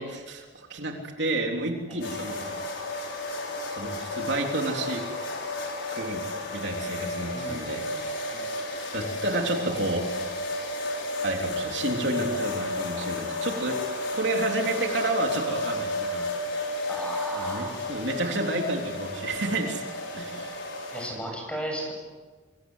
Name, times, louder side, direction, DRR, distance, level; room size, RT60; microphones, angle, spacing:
voice 1, 0.0-2.6 3.7-5.0 5.9-6.2 6.5-8.2 8.9-10.1 11.2-13.8 14.1-16.3 17.3-19.8 20.1-20.5, right 2 dB, 60° right, 2 dB, 3.7 m, -30 dB
sound 1, 2.0-21.1, left 2 dB, 70° left, 6.2 m, -32 dB
voice 2, 7.3-7.6 8.3-8.5 16.9-17.8 20.9-21.9, right 1 dB, 5° left, 1 dB, 7.8 m, -35 dB
27.0 x 25.5 x 8.3 m, 1.4 s
head